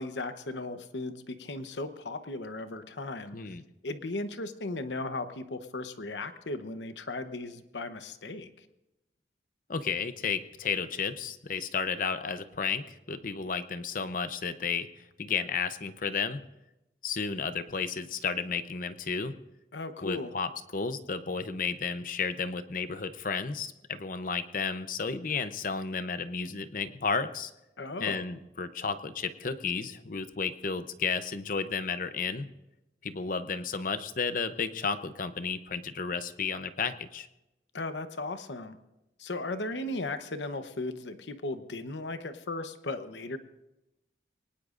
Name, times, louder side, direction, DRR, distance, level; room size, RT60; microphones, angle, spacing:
voice 1, 0.0-3.5 3.8-8.6 19.7-20.3 27.8-28.2 37.7-38.8 39.2-43.4, left 2 dB, 80° left, 9 dB, 0.9 m, -36 dB
voice 2, 9.7-14.9 15.2-16.4 17.0-19.3 20.0-27.5 28.0-32.5 33.0-37.3, left 5 dB, 50° left, 11 dB, 0.7 m, -32 dB
23.5 x 19.0 x 2.5 m, 0.94 s
head